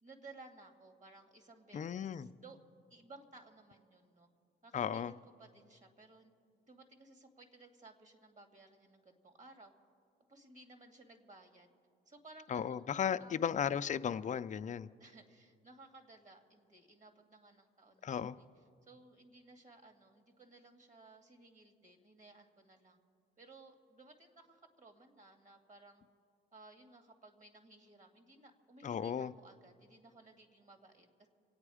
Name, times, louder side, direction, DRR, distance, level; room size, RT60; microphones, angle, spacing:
voice 1, 0.0-2.6 2.9-4.3 4.6-9.7 10.3-11.7 12.1-12.8 13.2-13.5 15.0-23.0 23.4-26.0 26.5-31.3, right 2 dB, 40° right, 5 dB, 2.1 m, -58 dB
voice 2, 1.7-2.3 4.7-5.1 12.5-14.9 18.0-18.4 28.8-29.3, left 8 dB, 40° left, 12 dB, 0.5 m, -35 dB
26.5 x 9.0 x 4.9 m, 2.5 s
cardioid pair, 90°, 20 cm